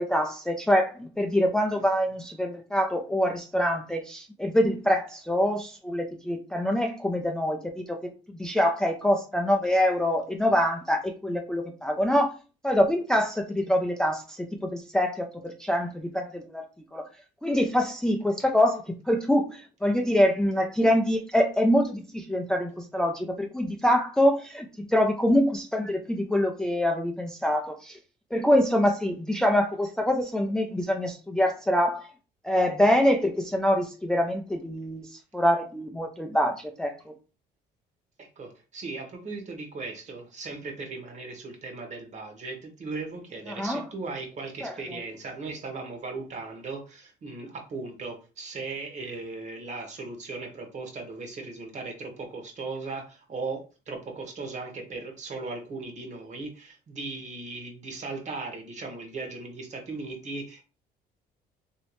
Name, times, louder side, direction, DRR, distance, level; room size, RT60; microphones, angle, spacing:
voice 1, 0.0-12.4 12.6-16.6 16.9-17.0 17.4-28.0 28.3-32.1 32.4-37.1 43.5-43.9 44.6-44.7, equal, 5° left, 3 dB, 0.4 m, -25 dB
voice 2, 38.2-60.6, right 3 dB, 45° right, 3 dB, 1.1 m, -37 dB
3.0 x 2.8 x 3.0 m, 0.34 s
cardioid pair, 110°, 17 cm